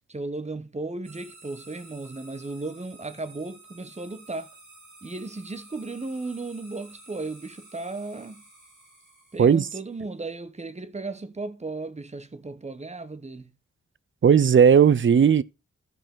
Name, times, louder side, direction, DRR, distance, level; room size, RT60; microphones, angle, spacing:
voice 1, 0.1-4.5 5.0-8.4 9.3-13.5, right 3 dB, 20° right, 0.9 m, -35 dB
sound 1, 1.0-10.0, right 2 dB, 75° right, 6.6 m, -51 dB
voice 2, 14.2-15.4, right 7 dB, 40° right, 0.5 m, -16 dB
15.0 x 5.0 x 3.7 m
wide cardioid pair, 90°, 30 cm